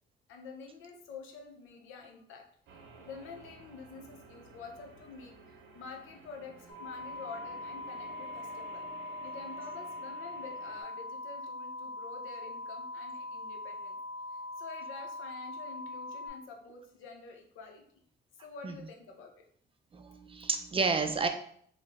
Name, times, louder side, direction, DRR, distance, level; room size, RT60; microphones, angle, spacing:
voice 1, 0.3-2.4 3.0-8.9 9.2-14.0 14.3-18.0 18.4-19.4, left 4 dB, 85° left, 3 dB, 0.6 m, -48 dB
sound 1, 2.7-10.8, right 4 dB, 75° right, 0.7 m, -53 dB
sound 2, 6.7-16.3, left 2 dB, 35° left, 0.8 m, -42 dB
voice 2, 19.9-21.3, right 4 dB, 30° right, 6 dB, 0.4 m, -30 dB
3.1 x 2.0 x 3.4 m, 0.62 s
cardioid pair, 90°, 20 cm